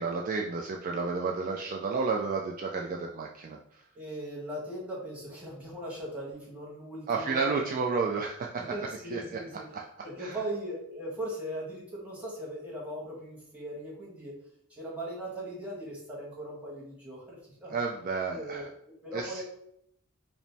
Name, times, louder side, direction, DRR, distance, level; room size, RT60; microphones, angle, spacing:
voice 1, 0.0-3.8 7.1-8.6 9.1-9.2 9.7-9.8 10.2-10.4 17.7-18.7 19.1-19.4, right 4 dB, 40° right, 0 dB, 0.3 m, -31 dB
voice 2, 3.9-7.6 8.6-9.7 10.0-14.4 14.7-17.8 18.3-19.4, right 1 dB, 5° right, -5 dB, 1.3 m, -39 dB
5.1 x 2.0 x 3.4 m, 0.73 s
head